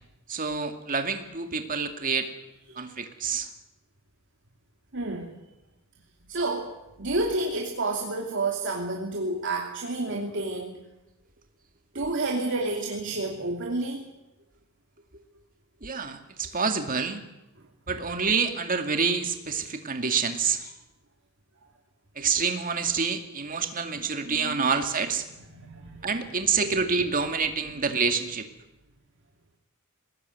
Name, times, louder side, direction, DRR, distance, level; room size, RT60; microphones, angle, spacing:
voice 1, 0.3-2.3 2.8-3.5 15.8-17.2 17.9-20.7 22.2-25.2 26.0-28.5, right 5 dB, 40° right, 6 dB, 2.3 m, -27 dB
voice 2, 4.9-5.3 6.3-10.8 11.9-14.0 17.9-18.0 23.9-24.7 25.4-26.1 26.5-26.6 27.6-27.7, right 2 dB, 60° right, 1 dB, 2.8 m, -30 dB
21.5 x 19.0 x 9.5 m, 0.93 s
head